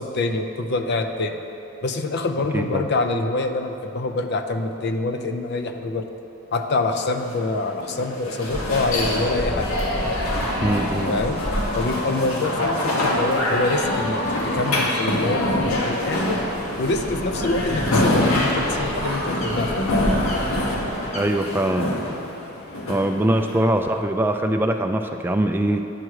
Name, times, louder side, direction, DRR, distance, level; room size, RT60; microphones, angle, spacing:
voice 1, 0.0-1.4 1.8-6.1 6.5-9.7 11.1-11.4 11.7-16.4 16.8-19.9, left 2 dB, 50° left, 6 dB, 0.5 m, -25 dB
sound 1, 6.9-24.0, left 1 dB, 85° left, 1.1 m, -25 dB
sound 2, 8.5-21.2, equal, 35° left, 0.9 m, -31 dB
voice 2, 10.6-11.1 21.1-21.9 22.9-25.8, right 1 dB, 10° right, 5 dB, 0.3 m, -22 dB
8.8 x 6.1 x 4.7 m, 3.0 s
head